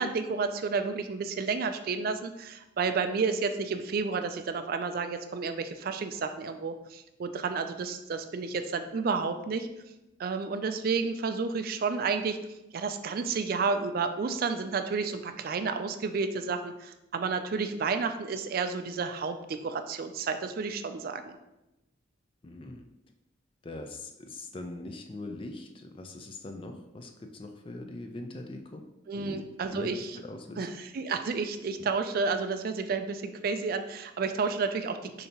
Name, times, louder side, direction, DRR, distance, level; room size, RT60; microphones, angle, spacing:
voice 1, 0.0-9.7 10.2-12.4 12.7-21.4 29.1-30.2 30.6-35.3, right 4 dB, 50° right, 8 dB, 0.3 m, -31 dB
voice 2, 22.4-22.8 23.6-28.8 29.1-29.5 29.7-30.7, left 2 dB, 25° left, 5 dB, 0.4 m, -42 dB
6.6 x 2.8 x 2.9 m, 0.94 s
head